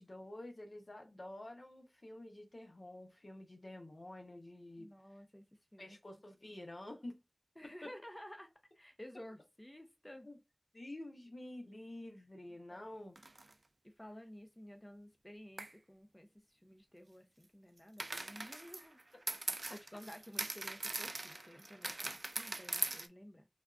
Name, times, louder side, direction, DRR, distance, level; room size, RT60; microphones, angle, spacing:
voice 1, 0.0-5.2 5.8-7.2 7.6-7.9 10.2-10.4 10.7-13.2 19.5-19.8, left 1 dB, 60° left, 0.7 m, -49 dB
voice 2, 4.8-5.4 5.7-6.0 7.6-8.5 8.7-10.3 12.7-12.9 13.8-19.0 19.7-23.5, left 1 dB, 20° left, 0.6 m, -53 dB
sound 1, 13.2-13.5 15.6-15.7 18.0-23.1, right 2 dB, 70° right, 0.3 m, -41 dB
3.4 x 2.3 x 2.3 m
wide cardioid pair, 55°, 0 cm